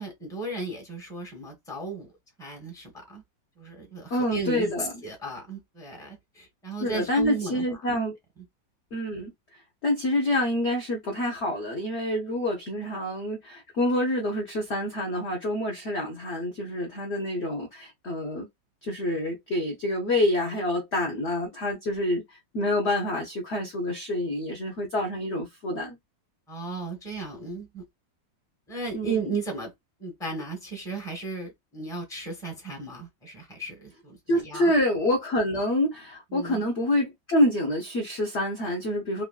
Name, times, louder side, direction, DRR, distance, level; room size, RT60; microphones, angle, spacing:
voice 1, 0.0-2.1 2.4-3.2 3.6-7.6 26.5-27.8 28.7-29.7 30.0-34.7 36.3-36.6, right 3 dB, 5° left, 0.8 m, -35 dB
voice 2, 4.1-5.0 6.8-8.2 8.9-18.5 18.8-26.0 28.9-29.3 34.3-39.2, left 1 dB, 55° left, 0.7 m, -27 dB
3.1 x 2.5 x 2.2 m
omnidirectional pair, 2.0 m